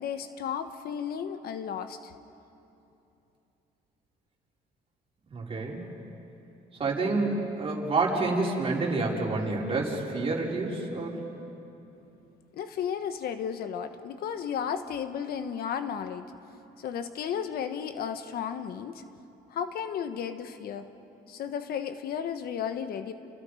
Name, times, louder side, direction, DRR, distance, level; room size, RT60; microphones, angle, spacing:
voice 1, 0.0-2.1 12.5-16.3 16.8-19.0 19.5-20.9 21.3-23.1, left 8 dB, 65° left, 9 dB, 1.4 m, -34 dB
voice 2, 5.3-5.9 6.7-11.2, right 3 dB, 35° right, -3 dB, 4.9 m, -28 dB
29.5 x 29.0 x 5.1 m, 2.9 s
cardioid pair, 110°, 17 cm